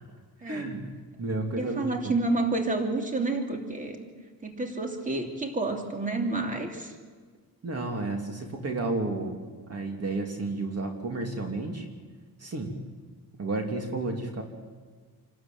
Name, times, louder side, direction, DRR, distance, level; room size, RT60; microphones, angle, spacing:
voice 1, 0.4-0.9 1.2-2.2 7.6-9.4 9.7-11.9 12.4-12.8 13.4-14.4, right 2 dB, 40° right, 3 dB, 2.8 m, -32 dB
voice 2, 1.6-4.0 4.4-6.9, right 2 dB, 20° right, 3 dB, 2.9 m, -29 dB
28.0 x 13.0 x 9.2 m, 1.5 s
cardioid pair, 125°, 38 cm